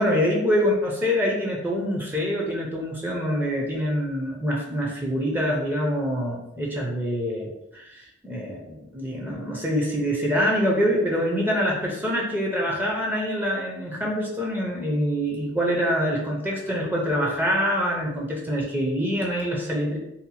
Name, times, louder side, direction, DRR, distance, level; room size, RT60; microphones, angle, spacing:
voice 1, 0.0-7.5 7.7-20.0, equal, 10° right, -2 dB, 0.5 m, -25 dB
2.7 x 2.1 x 4.0 m, 0.86 s
head